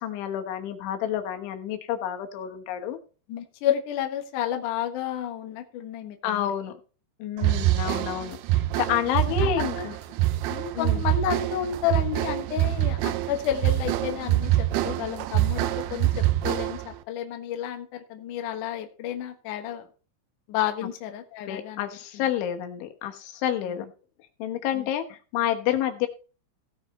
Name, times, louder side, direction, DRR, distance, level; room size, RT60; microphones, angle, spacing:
voice 1, 0.0-3.0 6.2-6.7 7.2-10.0 10.7-11.0 21.5-23.9 24.4-26.1, left 10 dB, 80° left, 5 dB, 3.6 m, -29 dB
voice 2, 3.3-6.5 7.6-7.7 9.4-9.8 10.5-19.9 20.5-21.8 22.1-22.2 24.7-24.9, left 10 dB, 65° left, 5 dB, 2.2 m, -31 dB
sound 1, 7.4-17.0, right 15 dB, 80° right, 2.3 m, -25 dB
17.0 x 6.2 x 4.2 m, 0.36 s
omnidirectional pair, 5.4 m